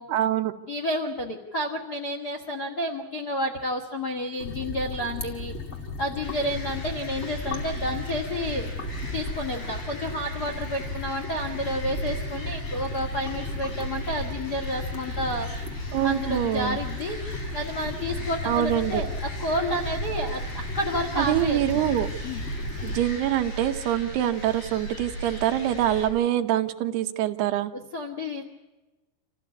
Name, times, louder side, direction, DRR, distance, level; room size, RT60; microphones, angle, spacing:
voice 1, 0.1-0.5 15.9-16.8 18.5-19.0 21.2-22.1 22.8-27.7, right 12 dB, 75° right, 7 dB, 2.9 m, -25 dB
voice 2, 0.7-5.5 6.0-8.7 9.1-15.5 16.0-17.2 17.5-19.1 19.4-21.9 22.2-22.4 27.9-28.4, equal, 80° left, 2 dB, 0.9 m, -30 dB
sound 1, 4.4-23.0, left 3 dB, 25° left, 1.6 m, -36 dB
sound 2, 6.2-26.1, right 1 dB, 60° left, 7.3 m, -37 dB
27.0 x 15.0 x 8.4 m, 1.1 s
omnidirectional pair, 5.0 m